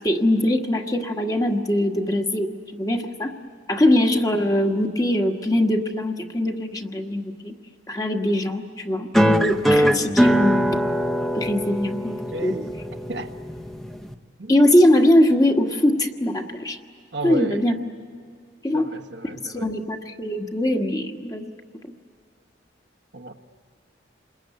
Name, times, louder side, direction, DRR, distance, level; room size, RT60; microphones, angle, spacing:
voice 1, 0.0-3.3 3.7-7.5 7.9-10.7 11.3-12.6 14.5-16.8 17.2-17.7 18.6-18.9 19.2-21.5, left 1 dB, 20° left, 3 dB, 1.4 m, -22 dB
sound 1, 9.1-14.1, equal, ahead, 0.9 m, -22 dB
voice 2, 12.3-12.7 13.1-13.3 14.4-14.5 17.1-17.6 18.7-19.7 23.1-23.3, right 2 dB, 70° right, 6 dB, 1.3 m, -33 dB
28.0 x 21.5 x 9.4 m, 2.2 s
head